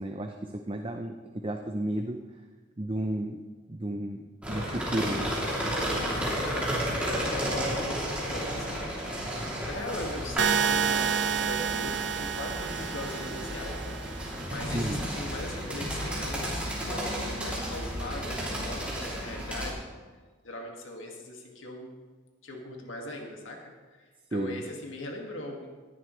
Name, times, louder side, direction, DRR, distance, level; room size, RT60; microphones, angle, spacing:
voice 1, 0.0-2.2 2.8-3.4 3.7-4.2 4.5-5.3 5.6-6.0 14.7-15.0 24.3-24.6, right 1 dB, 30° right, 4 dB, 0.6 m, -33 dB
sound 1, 4.4-19.7, equal, 5° right, 2.9 m, -33 dB
voice 2, 6.3-9.0 9.6-19.9 20.4-21.9 22.4-25.7, left 1 dB, 85° left, 1 dB, 2.0 m, -40 dB
sound 2, 10.4-14.4, right 7 dB, 60° right, 0.7 m, -29 dB
19.0 x 11.0 x 3.2 m, 1.4 s
head